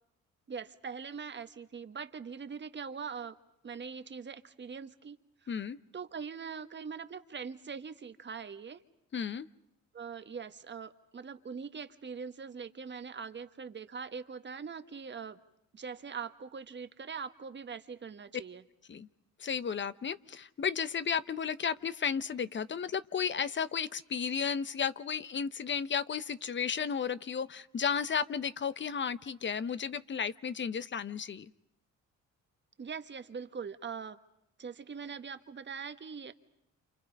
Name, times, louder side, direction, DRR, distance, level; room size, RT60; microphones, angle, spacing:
voice 1, 0.5-3.3 3.6-5.2 5.4-5.5 5.9-8.8 9.9-15.4 15.7-18.6 32.8-34.2 34.6-36.3, right 6 dB, 35° right, 1.4 m, -42 dB
voice 2, 5.5-5.8 9.1-9.5 18.9-19.1 19.4-31.5, left 7 dB, 40° left, 0.9 m, -33 dB
29.0 x 28.5 x 5.3 m
cardioid pair, 90°, 30 cm